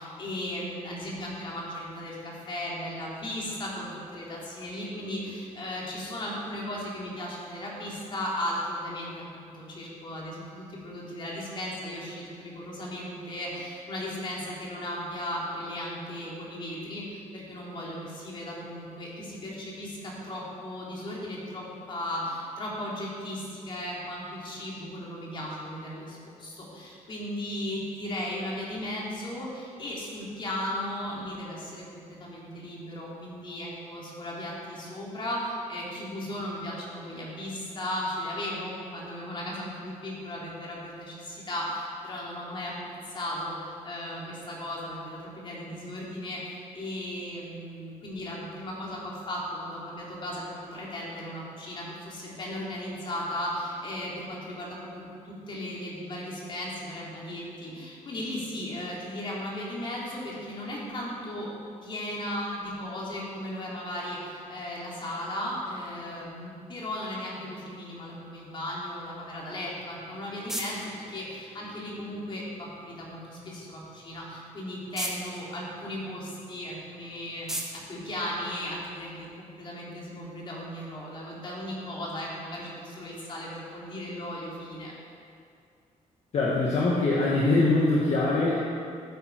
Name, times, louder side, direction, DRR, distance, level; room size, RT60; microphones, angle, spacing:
voice 1, 0.0-61.5 61.8-84.9, left 1 dB, 35° left, -4 dB, 3.0 m, -36 dB
sound 1, 69.7-79.1, right 1 dB, 5° right, 1.4 m, -43 dB
voice 2, 86.3-88.6, left 2 dB, 55° left, -5 dB, 1.6 m, -23 dB
15.0 x 8.9 x 4.6 m, 2.3 s
wide cardioid pair, 165°, 14 cm